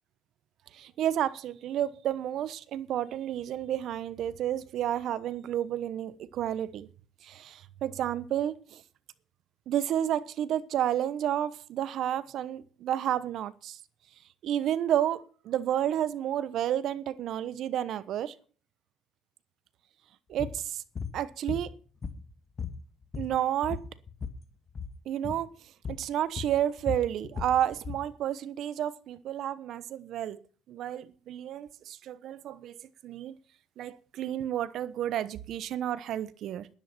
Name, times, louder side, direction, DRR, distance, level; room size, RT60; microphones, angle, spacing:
voice 1, 0.7-6.9 7.2-8.8 9.7-13.8 14.4-18.3 20.3-20.8 21.1-21.7 23.2-23.8 25.1-25.5 25.9-30.4 30.7-32.8 33.0-33.4 33.8-36.7, right 11 dB, 65° right, 1.0 m, -31 dB
sound 1, 20.4-20.6 20.9-21.2 21.5-22.3 22.6-24.4 24.7-24.9 25.2-25.4 25.8-26.1 26.4-28.1, left 6 dB, 40° left, 1.8 m, -37 dB
12.0 x 10.5 x 6.0 m
hypercardioid pair, 65°, 0 cm